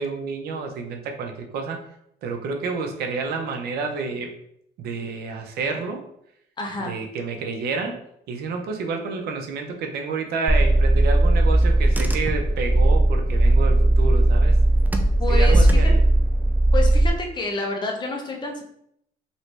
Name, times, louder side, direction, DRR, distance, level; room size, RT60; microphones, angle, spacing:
voice 1, 0.0-1.8 2.2-4.3 4.8-6.0 6.8-8.0 8.3-14.6 15.3-16.0, right 4 dB, 70° right, 4 dB, 0.6 m, -29 dB
voice 2, 6.6-6.9 15.2-15.8 16.7-18.6, left 2 dB, 25° left, 1 dB, 0.7 m, -28 dB
Car / Engine, 10.5-17.1, right 1 dB, 10° right, 0.3 m, -17 dB
3.0 x 2.7 x 3.3 m, 0.74 s
cardioid pair, 110°, 17 cm